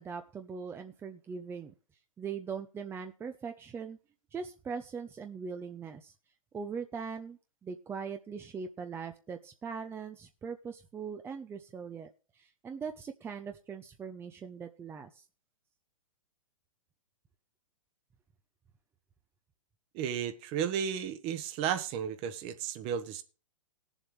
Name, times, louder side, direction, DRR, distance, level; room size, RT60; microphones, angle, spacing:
voice 1, 0.0-1.7 2.2-4.0 4.3-6.1 6.5-15.2, right 6 dB, 15° right, 0.7 m, -41 dB
voice 2, 19.9-23.2, right 8 dB, 35° right, 1.2 m, -33 dB
18.5 x 7.3 x 3.3 m
hypercardioid pair, 120°, 17 cm